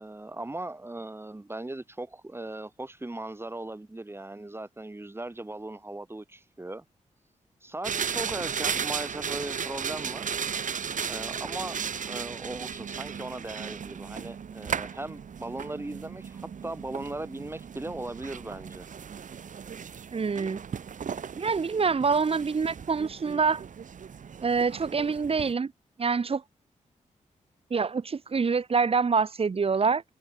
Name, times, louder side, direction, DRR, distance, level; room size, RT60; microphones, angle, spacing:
voice 1, 0.0-6.8 7.6-10.3 11.1-18.9, right 2 dB, 20° right, 7.3 m, -38 dB
sound 1, 7.8-25.5, right 7 dB, 70° right, 4.1 m, -36 dB
voice 2, 20.1-20.6 21.3-23.6 24.4-25.7 26.0-26.4 27.7-30.0, right 5 dB, 45° right, 1.8 m, -26 dB
wide cardioid pair, 95°, 13 cm